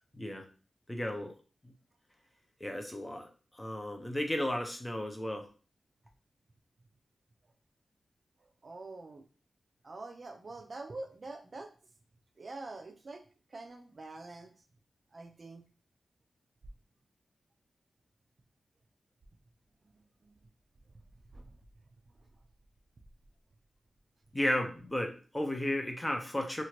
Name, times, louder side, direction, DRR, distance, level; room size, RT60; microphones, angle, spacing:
voice 1, 0.1-0.5 0.9-1.3 2.6-3.3 3.6-5.5 24.3-26.6, left 1 dB, 15° left, 4 dB, 0.5 m, -34 dB
voice 2, 8.6-9.2 9.8-11.7 12.4-13.2 13.5-14.5 15.1-15.6 21.3-21.5, right 2 dB, 45° right, 6 dB, 0.4 m, -45 dB
2.9 x 2.4 x 2.9 m, 0.37 s
wide cardioid pair, 125°, 0 cm